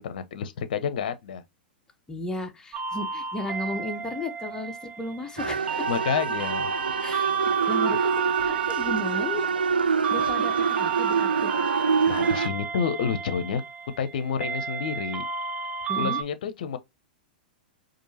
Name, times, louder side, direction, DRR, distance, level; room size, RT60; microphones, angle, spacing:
voice 1, 0.0-1.4 5.9-6.7 12.1-13.6 14.0-15.2 16.0-16.8, left 7 dB, 60° left, 0.6 m, -29 dB
voice 2, 2.1-5.9 7.0-7.4 7.7-8.0 8.4-9.5 10.1-11.5 15.9-16.2, left 2 dB, 10° left, 0.8 m, -34 dB
sound 1, 2.7-16.2, right 7 dB, 20° right, 0.4 m, -32 dB
sound 2, 5.4-12.5, right 5 dB, 85° right, 0.3 m, -26 dB
4.5 x 2.5 x 2.7 m
hypercardioid pair, 110°, 5 cm